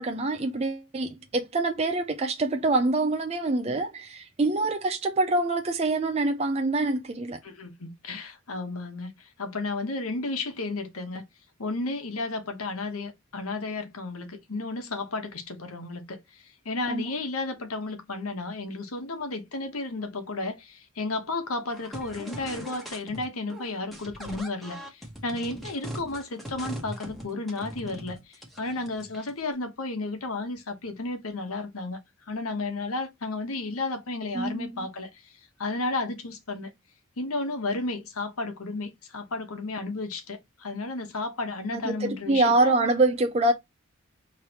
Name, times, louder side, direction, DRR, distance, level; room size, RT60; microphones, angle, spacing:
voice 1, 0.0-7.4 16.9-17.0 34.3-34.9 41.7-43.5, right 2 dB, 30° right, 0.4 m, -25 dB
voice 2, 7.4-11.2 11.6-32.0 32.3-35.3 35.6-36.7 37.2-42.7, left 3 dB, 90° left, 1.1 m, -33 dB
sound 1, 21.7-23.2 23.5-29.4, equal, ahead, 1.0 m, -40 dB
5.1 x 3.2 x 2.9 m
head